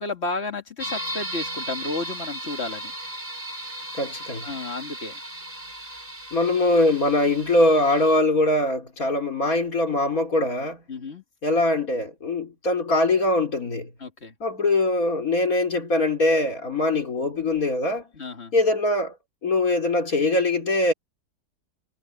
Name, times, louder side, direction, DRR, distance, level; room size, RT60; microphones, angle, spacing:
voice 1, 0.0-2.9 4.4-5.2 10.9-11.2 14.0-14.3 18.1-18.5, left 3 dB, 40° left, 2.5 m, -32 dB
sound 1, 0.8-8.2, right 1 dB, 35° right, 5.1 m, -36 dB
voice 2, 4.0-4.5 6.3-10.8 11.4-13.9 14.4-18.1 18.5-19.1 19.4-20.9, left 2 dB, 55° left, 4.3 m, -22 dB
omnidirectional pair, 1.8 m